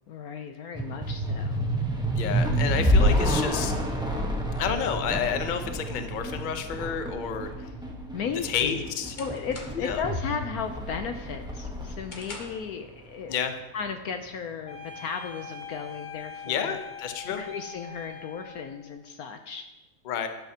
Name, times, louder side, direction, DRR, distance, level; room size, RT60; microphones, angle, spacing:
voice 1, 0.1-1.7 8.1-8.8 9.2-13.3 13.7-16.8 17.3-19.7, left 6 dB, 65° left, 7 dB, 0.9 m, -35 dB
sound 1, 0.7-13.3, equal, 5° right, 0.8 m, -28 dB
voice 2, 2.2-3.7 4.5-7.7 8.4-9.2 9.7-10.0 13.3-13.5 16.4-17.4 20.0-20.3, left 7 dB, 85° left, 7 dB, 0.4 m, -30 dB
sound 2, 8.3-10.0 10.4-10.8 11.2-12.7, left 2 dB, 30° left, 1.0 m, -45 dB
sound 3, 14.7-18.9, left 5 dB, 50° left, 1.6 m, -42 dB
11.5 x 10.5 x 2.8 m, 1.0 s
omnidirectional pair, 2.0 m